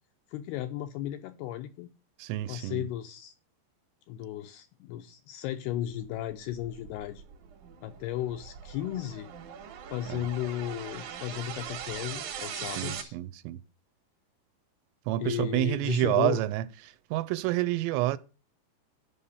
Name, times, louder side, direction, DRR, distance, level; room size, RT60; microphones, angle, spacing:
voice 1, 0.3-1.9 2.5-3.3 4.1-7.2 7.8-9.3 9.9-13.2 15.2-16.5, left 13 dB, 80° left, 2.4 m, -35 dB
voice 2, 2.2-2.9 10.1-10.2 12.8-13.6 15.1-16.6 17.1-18.2, right 16 dB, 85° right, 2.9 m, -28 dB
sound 1, 6.1-13.0, right 8 dB, 65° right, 2.7 m, -41 dB
9.8 x 5.7 x 6.9 m
omnidirectional pair, 5.2 m